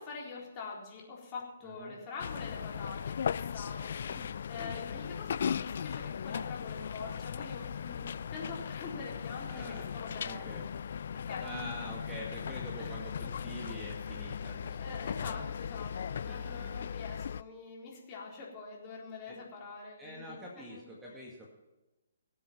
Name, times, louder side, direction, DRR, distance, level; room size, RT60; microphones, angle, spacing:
voice 1, 0.0-10.7 11.1-11.9 12.8-13.2 14.8-21.2, left 4 dB, 25° left, -3 dB, 4.0 m, -45 dB
voice 2, 1.6-2.0 4.0-4.3 4.6-4.8 9.5-9.9 10.2-10.7 11.4-15.5 16.2-16.8 19.3-19.4 20.0-21.5, equal, 5° right, -3 dB, 2.0 m, -46 dB
sound 1, 2.2-17.4, left 7 dB, 50° left, 0.4 m, -38 dB
19.0 x 7.8 x 5.8 m, 1.0 s
figure-of-eight pair, 130°, 0 cm